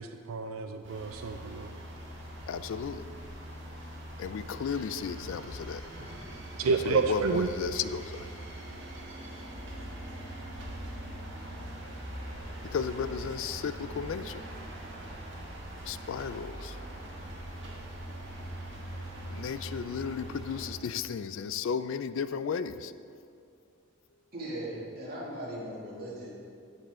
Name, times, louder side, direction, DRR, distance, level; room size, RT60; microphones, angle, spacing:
voice 1, 0.0-1.7 6.6-7.5, right 4 dB, 80° right, 7 dB, 0.4 m, -29 dB
sound 1, 0.8-20.7, right 1 dB, 60° right, 1.7 m, -42 dB
voice 2, 2.5-3.1 4.2-5.8 6.9-8.3 12.6-14.4 15.9-16.8 19.3-22.9, left 6 dB, 70° left, 13 dB, 0.3 m, -34 dB
voice 3, 24.3-26.3, right 1 dB, 45° right, -6 dB, 2.4 m, -38 dB
14.5 x 5.5 x 3.7 m, 2.3 s
head